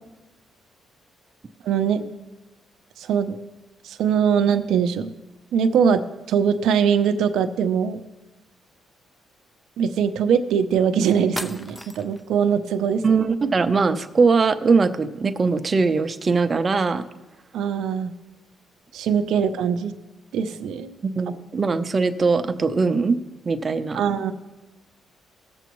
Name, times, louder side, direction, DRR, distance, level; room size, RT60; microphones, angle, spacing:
voice 1, 1.6-2.1 3.0-3.4 3.8-5.1 5.5-6.0 6.3-8.0 9.8-13.0 17.5-18.1 18.9-19.9 20.3-20.9 23.9-24.3, right 7 dB, 80° right, 8 dB, 0.6 m, -22 dB
sound 1, 11.4-12.3, equal, 5° left, 0.6 m, -34 dB
voice 2, 13.0-17.0 21.0-23.2 23.5-24.0, right 4 dB, 35° right, 9 dB, 0.7 m, -21 dB
18.0 x 6.9 x 3.1 m, 1.1 s
cardioid pair, 90°, 0 cm